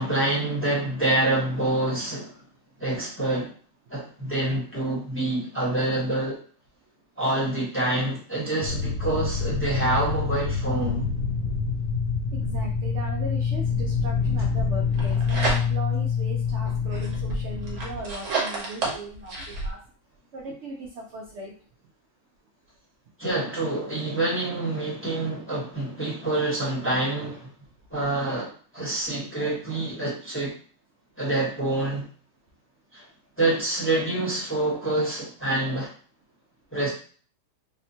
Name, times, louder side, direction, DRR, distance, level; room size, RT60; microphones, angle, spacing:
voice 1, 0.0-2.3 2.8-3.5 3.9-6.3 7.2-11.1 23.2-27.5 27.9-30.5 31.2-32.1 32.9-33.0 33.4-35.9 36.7-36.9, right 2 dB, 10° left, -7 dB, 0.8 m, -26 dB
sound 1, 8.6-18.0, left 5 dB, 80° left, 1.1 m, -26 dB
voice 2, 12.3-19.8 20.3-21.5, right 2 dB, 75° right, 0 dB, 0.6 m, -38 dB
sound 2, 14.8-16.0 16.4-19.7, right 3 dB, 55° right, 1.0 m, -30 dB
3.5 x 2.2 x 2.7 m, 0.43 s
omnidirectional pair, 1.8 m